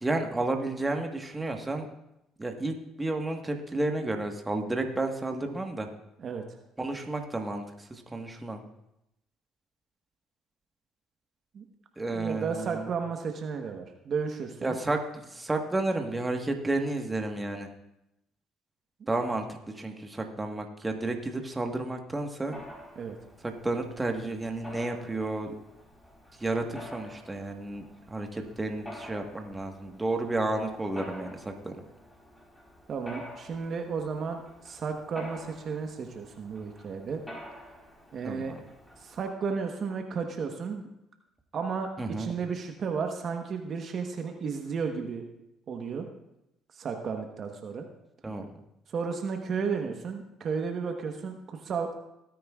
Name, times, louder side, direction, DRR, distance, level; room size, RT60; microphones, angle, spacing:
voice 1, 0.0-1.9 2.4-5.9 6.8-8.6 12.0-12.8 14.6-17.7 19.1-19.5 19.8-22.5 23.6-25.5 26.4-31.7 38.2-38.6 42.0-42.3 48.2-48.5, right 2 dB, 20° right, 3 dB, 1.4 m, -31 dB
voice 2, 12.1-14.8 23.0-23.2 32.9-37.2 38.1-38.5 39.0-40.9 41.5-45.2 45.7-46.1 46.8-47.8 48.9-52.0, right 5 dB, 50° right, 4 dB, 1.2 m, -33 dB
Mechanisms, 22.5-39.3, left 1 dB, 10° left, 3.8 m, -48 dB
17.5 x 9.3 x 2.4 m, 0.85 s
supercardioid pair, 75°, 0 cm